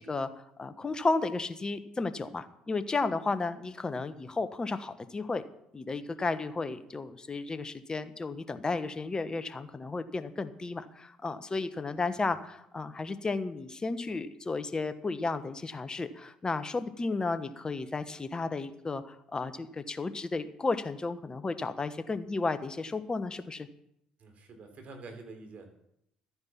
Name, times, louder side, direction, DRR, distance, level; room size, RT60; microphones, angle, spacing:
voice 1, 0.0-5.4 5.7-23.7, left 3 dB, 25° left, 12 dB, 1.3 m, -33 dB
voice 2, 24.2-25.8, right 3 dB, 50° right, 4 dB, 3.5 m, -48 dB
13.0 x 9.6 x 5.9 m, 0.77 s
hypercardioid pair, 60°, 3 cm